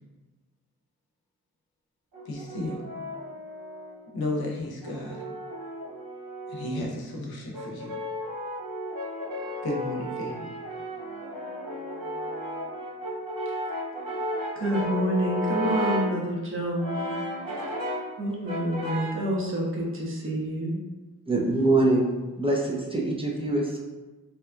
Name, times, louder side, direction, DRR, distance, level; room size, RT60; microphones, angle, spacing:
Brass instrument, 2.1-4.1 4.8-6.9 7.5-16.2 16.8-18.2 18.5-19.3, equal, 70° right, 0.7 m, -34 dB
voice 1, 2.3-2.8 4.1-5.2 6.5-8.0 9.6-10.5, left 1 dB, 80° left, -1 dB, 0.6 m, -33 dB
voice 2, 14.5-17.0 18.2-20.8, equal, 35° right, -3 dB, 0.8 m, -28 dB
voice 3, 21.3-22.1 22.4-23.8, right 2 dB, 15° right, -2 dB, 0.4 m, -24 dB
2.8 x 2.3 x 2.3 m, 1.2 s
cardioid pair, 60°, 36 cm